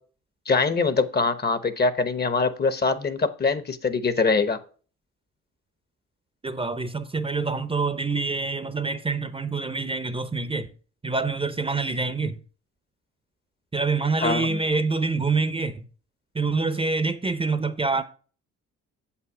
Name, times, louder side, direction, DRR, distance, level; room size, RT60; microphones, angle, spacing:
voice 1, 0.5-4.6 14.2-14.6, left 4 dB, 30° left, 0.9 m, -23 dB
voice 2, 6.4-10.7 11.0-12.4 13.7-15.9 16.3-18.0, right 3 dB, 20° right, 0.7 m, -26 dB
7.6 x 5.8 x 4.9 m
cardioid pair, 90°, 30 cm